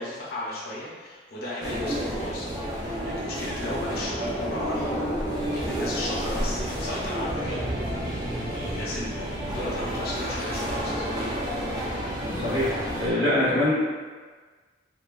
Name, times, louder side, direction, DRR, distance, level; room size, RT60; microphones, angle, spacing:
voice 1, 0.0-7.7 8.3-11.0 13.2-13.5, left 1 dB, 50° left, -5 dB, 0.6 m, -35 dB
sound 1, 1.6-13.1, equal, 20° right, 0.4 m, -30 dB
sound 2, 4.4-7.4, equal, 40° right, 0.9 m, -36 dB
sound 3, 7.2-13.1, equal, 55° right, 1.4 m, -40 dB
voice 2, 12.3-13.7, left 1 dB, 75° right, -11 dB, 1.5 m, -24 dB
3.1 x 2.2 x 2.3 m, 1.4 s
head